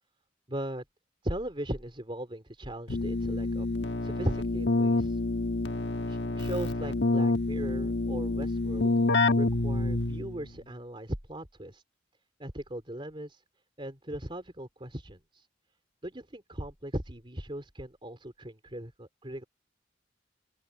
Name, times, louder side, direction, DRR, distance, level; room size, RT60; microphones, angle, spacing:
voice 1, 0.5-0.8 1.2-3.7 4.0-5.2 6.1-8.9 9.4-11.8 12.4-13.4 13.8-15.5 16.0-19.4, right 1 dB, 30° right, 3.4 m, -38 dB
Keyboard (musical), 2.9-10.4, left 2 dB, 70° left, 1.4 m, -28 dB
open air
head